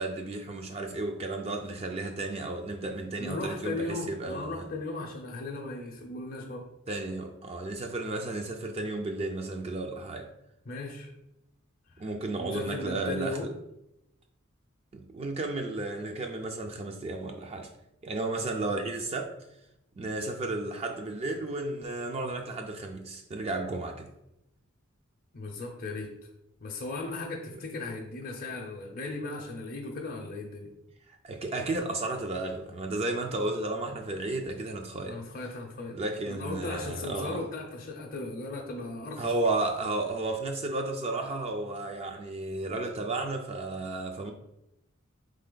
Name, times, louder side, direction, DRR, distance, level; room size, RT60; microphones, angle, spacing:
voice 1, 0.0-4.7 6.9-10.3 12.0-13.4 14.9-17.7 18.0-19.3 20.0-24.1 31.1-35.2 35.9-37.4 39.2-44.3, right 2 dB, 30° right, 0.4 m, -33 dB
voice 2, 3.2-6.7 10.7-11.1 11.9-12.1 12.4-13.5 25.3-26.1 26.6-30.7 35.1-39.3, left 2 dB, 45° left, 0.6 m, -37 dB
3.9 x 3.3 x 3.8 m
head